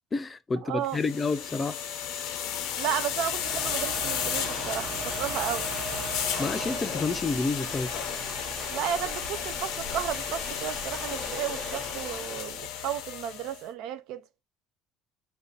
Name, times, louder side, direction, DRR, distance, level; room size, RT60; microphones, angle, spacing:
voice 1, 0.1-1.8 6.4-7.9, left 3 dB, 25° left, 0.4 m, -29 dB
voice 2, 0.6-1.0 2.8-5.7 8.7-14.2, right 10 dB, 75° right, 0.3 m, -33 dB
sound 1, 0.9-13.6, left 9 dB, 80° left, 0.5 m, -33 dB
sound 2, 3.1-12.5, right 5 dB, 50° right, 0.7 m, -39 dB
2.6 x 2.3 x 3.7 m
supercardioid pair, 100°, 0 cm